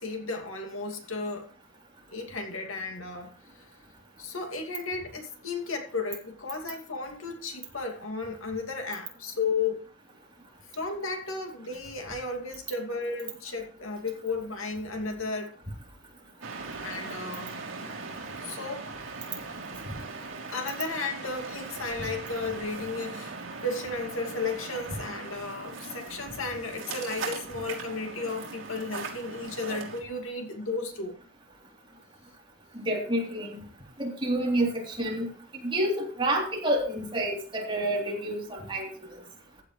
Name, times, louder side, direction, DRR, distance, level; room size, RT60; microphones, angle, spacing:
voice 1, 0.0-1.5 2.1-3.7 4.2-9.9 10.8-15.6 16.8-17.6 18.4-18.9 20.5-23.3 23.6-31.1, left 3 dB, 90° left, 2.5 m, -34 dB
sound 1, 16.4-30.0, right 4 dB, 65° right, 3.3 m, -39 dB
voice 2, 32.8-33.6 34.0-35.3 35.6-38.9, right 1 dB, 25° right, 3.5 m, -28 dB
15.0 x 9.5 x 3.3 m
head